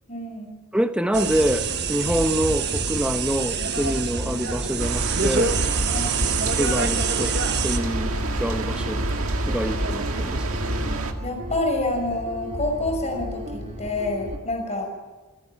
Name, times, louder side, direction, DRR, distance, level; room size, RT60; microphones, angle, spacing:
voice 1, 0.1-0.6 5.9-6.1 11.2-14.9, left 2 dB, 30° left, 2 dB, 6.1 m, -27 dB
voice 2, 0.7-5.6 6.5-7.3 7.6-8.1 8.4-9.0 9.5-10.4, equal, 5° right, 8 dB, 1.0 m, -26 dB
sound 1, 1.1-7.8, right 6 dB, 50° right, 1.5 m, -26 dB
sound 2, 1.3-14.4, equal, 35° right, 2.8 m, -34 dB
sound 3, 4.8-11.1, right 2 dB, 80° right, 1.8 m, -27 dB
27.5 x 10.5 x 9.9 m, 1.2 s
head